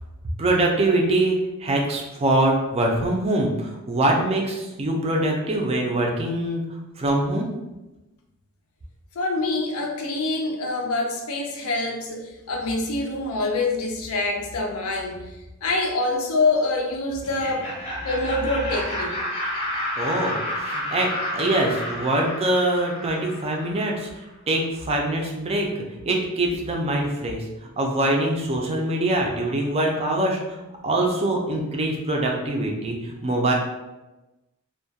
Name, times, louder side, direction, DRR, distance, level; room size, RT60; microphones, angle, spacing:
voice 1, 0.4-6.6 7.0-7.5 20.0-25.7 26.0-30.6 30.8-33.5, right 1 dB, 25° right, 0 dB, 0.4 m, -24 dB
voice 2, 9.2-17.7 18.0-19.1, left 2 dB, 70° left, 1 dB, 0.5 m, -25 dB
Laughter, 17.2-24.0, left 1 dB, 25° left, 0.6 m, -30 dB
2.2 x 2.1 x 2.7 m, 1.0 s
head